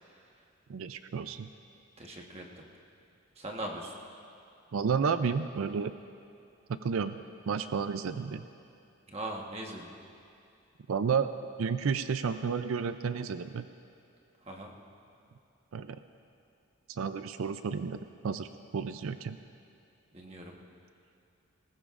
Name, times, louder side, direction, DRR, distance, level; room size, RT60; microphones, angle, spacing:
voice 1, 0.7-1.5 4.7-5.9 6.7-7.2 7.5-8.4 10.9-11.3 11.6-13.7 15.7-16.0 16.9-18.0 18.2-18.5 18.7-19.4, right 6 dB, 75° right, 11 dB, 0.4 m, -31 dB
voice 2, 2.0-2.7 3.4-3.9 9.1-9.9 14.5-14.7 20.1-20.6, right 1 dB, 30° right, 0 dB, 1.3 m, -40 dB
20.0 x 18.5 x 2.5 m, 2.6 s
head